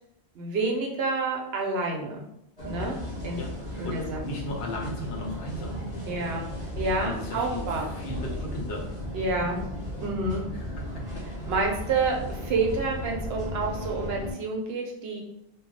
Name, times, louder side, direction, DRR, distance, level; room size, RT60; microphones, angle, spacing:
voice 1, 0.3-2.2 2.6-2.9 3.2-3.4 3.8-4.2 6.1-6.5 6.8-7.9 9.1-9.6 10.0-10.5 11.5-15.2, right 3 dB, 65° right, 0 dB, 0.8 m, -28 dB
sound 1, 2.6-14.3, equal, 40° left, 0.9 m, -35 dB
voice 2, 3.4-5.8 7.0-8.9 10.5-11.3, left 1 dB, 70° left, -1 dB, 0.8 m, -37 dB
2.2 x 2.0 x 3.8 m, 0.79 s
omnidirectional pair, 1.2 m